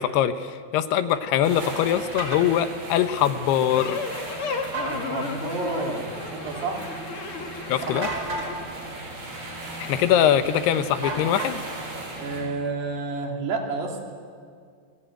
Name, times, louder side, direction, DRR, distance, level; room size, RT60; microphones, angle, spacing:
voice 1, 0.0-4.0 7.7-8.1 9.8-11.6, left 10 dB, 75° left, 10 dB, 2.8 m, -22 dB
sound 1, 1.4-12.4, right 2 dB, 50° right, 7.8 m, -37 dB
sound 2, 2.2-2.4 4.6-5.0 7.9-8.5 11.0-11.8, right 2 dB, 30° right, 5.8 m, -31 dB
sound 3, 3.7-8.5, left 4 dB, 45° left, 2.0 m, -34 dB
voice 2, 4.8-6.9 7.8-8.0 12.2-14.0, right 3 dB, 70° right, 1 dB, 4.7 m, -30 dB
29.5 x 19.0 x 9.0 m, 2.1 s
omnidirectional pair, 4.9 m